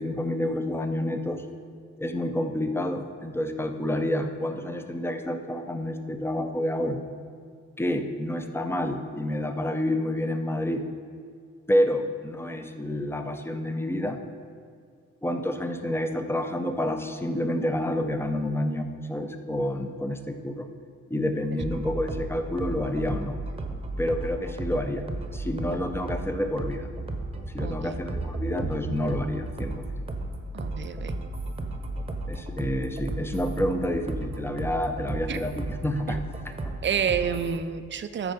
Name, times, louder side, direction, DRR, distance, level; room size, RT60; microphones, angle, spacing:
voice 1, 0.0-1.4 2.0-7.0 7.8-10.9 11.7-14.2 15.2-20.7 21.1-23.4 24.0-25.1 25.3-26.9 27.5-29.8 32.3-36.2 36.6-36.7, left 1 dB, 10° left, 7 dB, 0.7 m, -29 dB
sound 1, 21.6-37.6, right 2 dB, 20° right, 1.0 m, -34 dB
voice 2, 27.6-28.0 30.5-31.1 35.3-35.4 36.1-36.2 36.8-38.3, right 7 dB, 40° right, 11 dB, 0.5 m, -29 dB
13.5 x 4.5 x 5.2 m, 2.1 s
cardioid pair, 90°, 30 cm